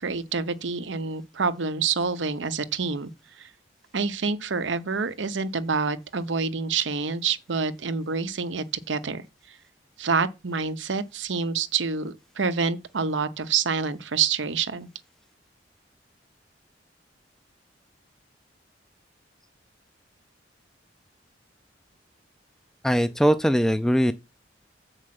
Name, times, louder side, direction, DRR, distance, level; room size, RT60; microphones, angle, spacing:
voice 1, 0.0-3.1 3.4-3.5 3.9-9.2 10.0-14.9, right 5 dB, 85° right, 0.8 m, -27 dB
voice 2, 22.8-24.1, equal, 5° left, 0.4 m, -21 dB
7.5 x 4.9 x 5.9 m
head